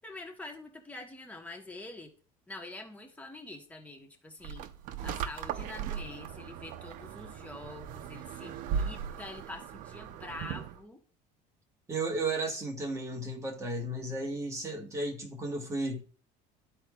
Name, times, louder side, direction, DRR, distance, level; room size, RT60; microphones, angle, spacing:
voice 1, 0.0-2.1 2.5-4.7 5.0-11.0, left 2 dB, 10° left, 1.2 m, -45 dB
sound 1, 4.4-10.8, right 7 dB, 60° right, 0.6 m, -38 dB
voice 2, 11.9-16.0, right 2 dB, 20° right, 1.3 m, -34 dB
13.0 x 4.4 x 2.3 m
cardioid pair, 145°, 15 cm